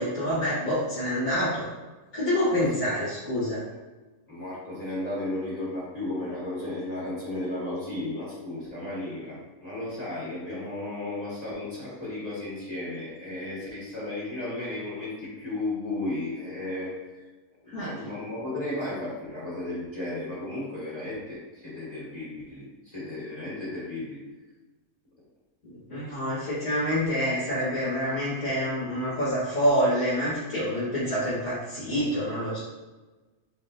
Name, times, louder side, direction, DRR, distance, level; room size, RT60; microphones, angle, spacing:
voice 1, 0.0-1.7 2.1-3.6 17.7-17.9 25.9-32.6, equal, 85° left, -14 dB, 2.2 m, -27 dB
voice 2, 4.3-17.3 17.6-24.2, left 2 dB, 30° left, -9 dB, 1.6 m, -34 dB
5.5 x 3.4 x 2.8 m, 1.2 s
omnidirectional pair, 1.4 m